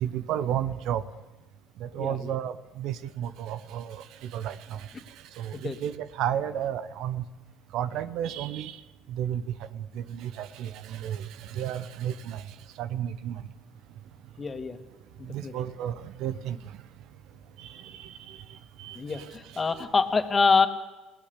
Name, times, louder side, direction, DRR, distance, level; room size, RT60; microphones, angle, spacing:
voice 1, 0.0-1.0 1.8-4.9 5.4-7.2 7.7-8.7 9.1-9.4 9.7-12.4 12.8-13.4 15.3-16.6 17.6-18.4 18.8-19.3 19.5-19.8, right 10 dB, 65° right, 15 dB, 1.1 m, -32 dB
voice 2, 2.0-2.3 5.6-5.8 14.4-14.8 15.2-15.5 18.9-20.7, left 4 dB, 30° left, 8 dB, 2.5 m, -25 dB
29.5 x 18.0 x 8.4 m, 1.2 s
hypercardioid pair, 55°, 0 cm